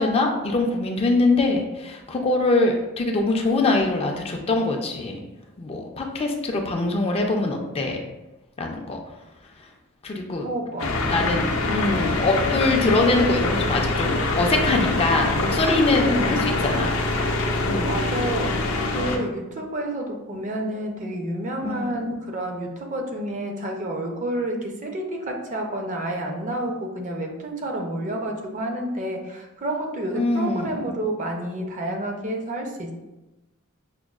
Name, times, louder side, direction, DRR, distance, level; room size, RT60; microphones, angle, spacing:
voice 1, 0.0-5.2 5.6-8.0 8.6-9.0 10.0-10.5 11.1-16.4 16.6-17.0 17.6-17.9 21.6-22.0 30.1-30.9, left 2 dB, 30° left, 2 dB, 0.4 m, -23 dB
voice 2, 10.4-11.0 11.7-12.1 16.0-16.3 17.9-32.9, right 1 dB, 35° right, 2 dB, 0.5 m, -29 dB
sound 1, 10.8-19.2, left 2 dB, 75° left, 0.5 m, -24 dB
5.8 x 2.2 x 2.3 m, 1.0 s
head